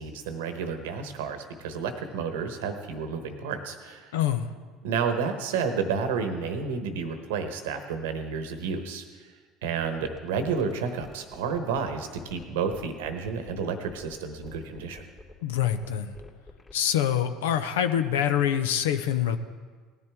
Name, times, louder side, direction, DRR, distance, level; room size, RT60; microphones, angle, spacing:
voice 1, 0.0-4.1 4.8-9.0 9.6-15.0, right 5 dB, 85° right, 7 dB, 1.1 m, -31 dB
voice 2, 4.1-4.5 15.4-16.1 16.7-19.4, left 10 dB, 85° left, 10 dB, 0.6 m, -25 dB
sound 1, 9.6-16.9, left 2 dB, 30° left, 2.5 m, -48 dB
18.0 x 10.5 x 3.5 m, 1.5 s
hypercardioid pair, 75°, 0 cm